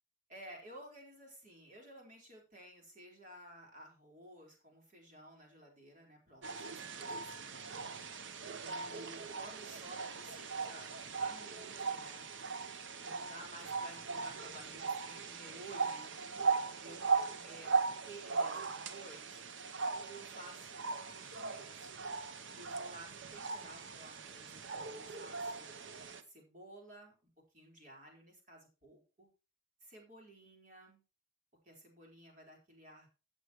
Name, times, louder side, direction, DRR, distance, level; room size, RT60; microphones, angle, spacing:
voice 1, 0.3-7.8 8.5-12.3 13.0-16.2 16.8-17.7 18.0-19.4 20.1-21.9 22.5-25.8 26.2-27.1 27.5-29.3 29.8-31.0 31.6-33.1, right 1 dB, 40° right, 0 dB, 4.4 m, -54 dB
sound 1, 6.4-26.2, right 4 dB, 70° right, 0.8 m, -39 dB
16.0 x 8.2 x 3.1 m, 0.31 s
head